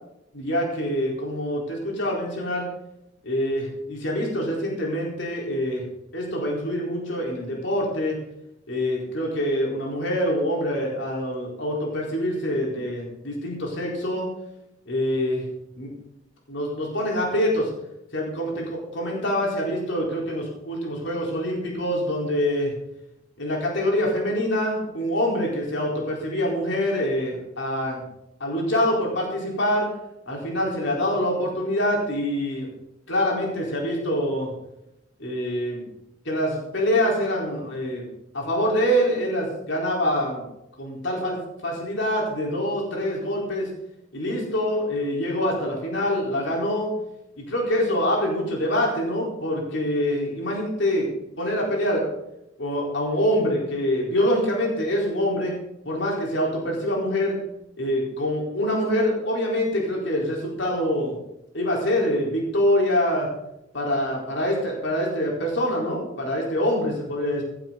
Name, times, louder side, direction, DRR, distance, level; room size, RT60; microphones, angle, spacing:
voice 1, 0.3-2.7 3.2-5.8 6.1-8.2 8.7-14.3 14.9-15.4 15.7-15.9 16.5-17.7 18.1-22.7 23.4-28.0 28.4-29.9 30.3-32.7 33.1-34.5 35.2-35.9 36.2-38.1 38.3-40.4 40.8-43.7 44.1-46.9 47.4-51.1 51.4-52.1 52.6-55.5 55.8-57.4 57.8-61.2 61.5-63.3 63.7-67.4, equal, 65° left, -2 dB, 4.4 m, -25 dB
16.0 x 11.5 x 4.1 m, 0.85 s
head